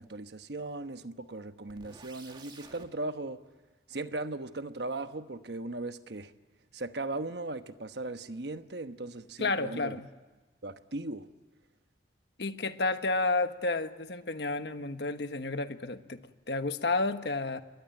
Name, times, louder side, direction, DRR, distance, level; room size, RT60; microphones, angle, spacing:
voice 1, 0.0-3.4 3.9-6.3 6.7-9.9 10.6-11.3, right 2 dB, 70° right, 1.1 m, -38 dB
sound 1, 1.7-2.9, right 3 dB, 25° right, 1.9 m, -51 dB
voice 2, 9.4-10.1 12.4-16.2 16.5-17.6, left 3 dB, 70° left, 1.3 m, -31 dB
28.5 x 21.5 x 9.0 m
head